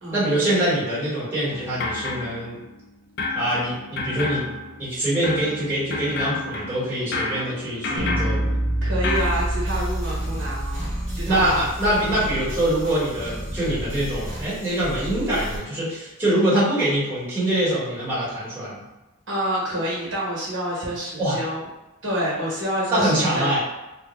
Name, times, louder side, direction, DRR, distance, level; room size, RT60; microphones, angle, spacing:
voice 1, 0.1-2.6 3.3-8.5 11.3-18.8 21.2-21.4 22.9-23.6, right 1 dB, 10° right, -10 dB, 1.3 m, -24 dB
sound 1, 1.5-2.8 3.2-9.3, left 3 dB, 55° left, 0.4 m, -30 dB
sound 2, 8.0-14.0, right 1 dB, 85° right, 0.9 m, -28 dB
voice 2, 8.8-11.7 12.1-12.3 19.3-21.6 22.0-23.6, equal, 65° right, -5 dB, 1.2 m, -28 dB
sound 3, 9.1-15.6, equal, 30° right, 1.0 m, -33 dB
3.4 x 2.1 x 3.1 m, 1.0 s
head